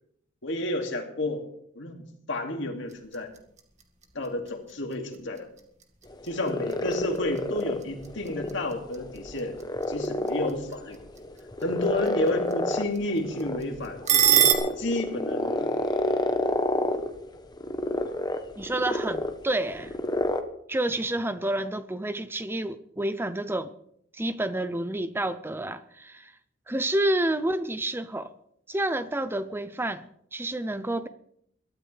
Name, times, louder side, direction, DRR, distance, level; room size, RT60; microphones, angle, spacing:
voice 1, 0.4-1.5 1.7-3.3 4.1-5.5 6.2-9.6 9.9-11.0 11.6-14.5 14.8-15.8, left 1 dB, 65° left, 2.4 m, -31 dB
sound 1, 2.8-14.5, right 10 dB, 35° right, 1.9 m, -31 dB
sound 2, 6.1-20.4, left 1 dB, 20° left, 1.0 m, -30 dB
voice 2, 18.6-19.9 20.7-23.7 24.1-26.3 26.7-28.3 28.7-31.1, right 1 dB, 10° right, 0.6 m, -29 dB
22.5 x 13.0 x 3.4 m
head